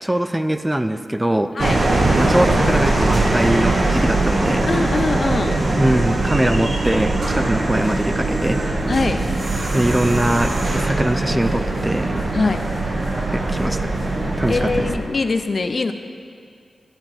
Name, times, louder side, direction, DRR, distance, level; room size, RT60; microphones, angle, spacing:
voice 1, 0.0-1.5 2.2-4.6 5.8-8.6 9.7-12.2 13.3-14.0 14.4-14.9, right 1 dB, 10° right, 9 dB, 0.4 m, -22 dB
sound 1, 1.6-15.0, right 2 dB, 60° right, 1.3 m, -21 dB
voice 2, 4.7-5.6 8.9-9.2 12.3-12.6 14.5-15.9, left 3 dB, 55° left, 8 dB, 0.6 m, -22 dB
13.0 x 8.7 x 4.4 m, 2.2 s
wide cardioid pair, 80°, 0 cm